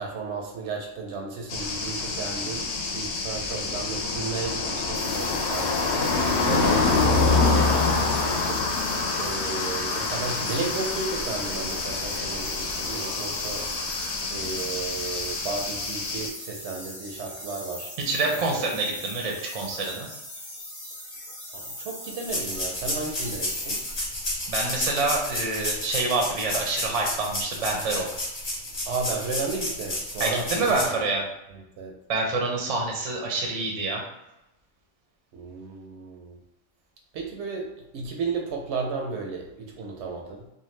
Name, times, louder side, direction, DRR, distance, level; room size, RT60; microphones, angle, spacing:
voice 1, 0.0-2.7 2.9-13.7 14.3-17.9 18.5-18.6 21.5-23.8 28.9-31.0 31.5-32.0 35.3-36.4 37.1-40.5, right 4 dB, 75° right, 1 dB, 0.9 m, -34 dB
sound 1, 1.5-16.3, left 3 dB, 70° left, 0.8 m, -26 dB
sound 2, 4.9-24.4, equal, 20° left, 0.6 m, -41 dB
voice 2, 18.0-20.1 24.5-28.1 30.2-31.3 32.1-34.0, right 3 dB, 40° right, 0 dB, 0.5 m, -27 dB
sound 3, 22.3-30.9, left 1 dB, 35° left, 0.9 m, -31 dB
2.6 x 2.2 x 3.1 m, 0.89 s
omnidirectional pair, 1.2 m